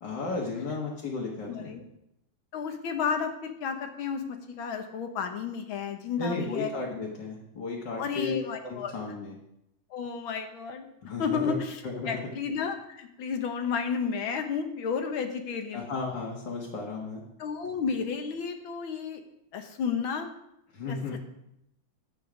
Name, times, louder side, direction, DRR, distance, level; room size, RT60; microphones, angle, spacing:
voice 1, 0.0-1.8 6.2-9.3 11.0-11.5 11.8-12.2 15.7-17.2 20.7-21.2, left 3 dB, 65° left, -3 dB, 2.2 m, -34 dB
voice 2, 1.5-1.8 2.5-6.7 8.0-8.9 9.9-10.9 11.2-11.8 12.1-15.8 17.4-19.2 19.5-20.3 20.9-21.0, left 6 dB, 85° left, 6 dB, 1.9 m, -32 dB
11.0 x 8.4 x 5.1 m, 0.82 s
omnidirectional pair, 2.1 m